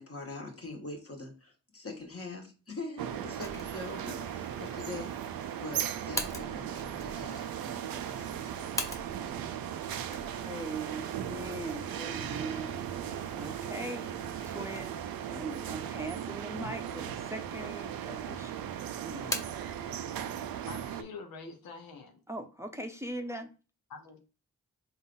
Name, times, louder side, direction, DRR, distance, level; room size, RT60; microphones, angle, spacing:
voice 1, 0.0-5.1 5.6-8.7 9.2-9.6, left 2 dB, 40° left, 1.6 m, -43 dB
sound 1, 3.0-21.0, right 9 dB, 85° right, 0.5 m, -37 dB
sound 2, 3.4-9.4 9.7-15.2 15.6-15.7 16.5-17.2 17.5-18.3 18.6-19.7, equal, 10° left, 1.2 m, -43 dB
voice 2, 10.5-18.6 19.0-19.5 22.3-23.5, right 2 dB, 10° right, 0.7 m, -41 dB
voice 3, 20.6-22.2 23.9-24.2, left 4 dB, 80° left, 0.8 m, -45 dB
3.9 x 2.6 x 3.9 m
cardioid pair, 40°, 34 cm